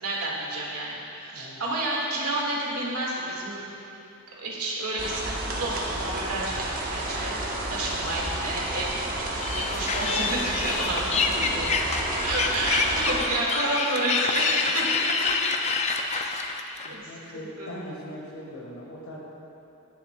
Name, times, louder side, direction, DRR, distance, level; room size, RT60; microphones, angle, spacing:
voice 1, 0.0-3.7 4.3-6.6 6.9-15.3 16.1-16.2 16.9-17.1 17.6-17.8, right 2 dB, 85° right, -4 dB, 1.8 m, -30 dB
sound 1, 5.0-13.2, right 1 dB, 40° right, 1.0 m, -31 dB
sound 2, 9.4-16.9, left 4 dB, 30° left, 0.4 m, -27 dB
voice 2, 16.8-19.3, left 1 dB, 70° left, -2 dB, 1.6 m, -40 dB
15.5 x 7.5 x 2.3 m, 2.9 s
head